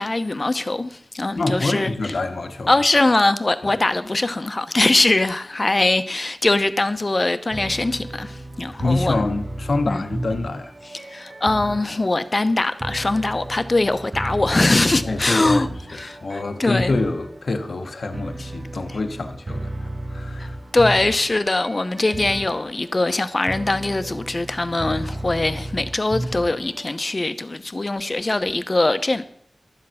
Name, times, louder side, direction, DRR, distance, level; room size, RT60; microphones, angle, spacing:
voice 1, 0.0-1.9 2.7-9.3 9.9-10.0 11.1-17.0 20.4-20.5 20.7-29.2, left 2 dB, 45° left, 0.9 m, -22 dB
voice 2, 1.4-2.8 3.7-3.8 8.8-10.7 15.0-15.6 15.9-20.6, left 2 dB, 85° left, 0.9 m, -26 dB
sound 1, 7.5-26.8, right 1 dB, 60° right, 1.0 m, -33 dB
12.0 x 7.6 x 5.7 m
cardioid pair, 45°, 0 cm